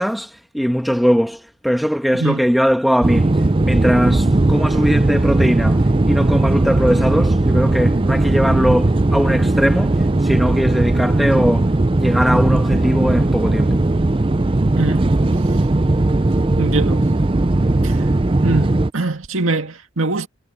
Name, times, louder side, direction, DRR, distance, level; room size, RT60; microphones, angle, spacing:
voice 1, 0.0-3.3 3.6-13.9, equal, ahead, 1.4 m, -20 dB
sound 1, 3.0-18.9, right 2 dB, 25° right, 0.5 m, -17 dB
voice 2, 14.8-15.1 16.6-17.1 17.8-18.2 18.4-20.3, right 3 dB, 70° right, 2.1 m, -23 dB
head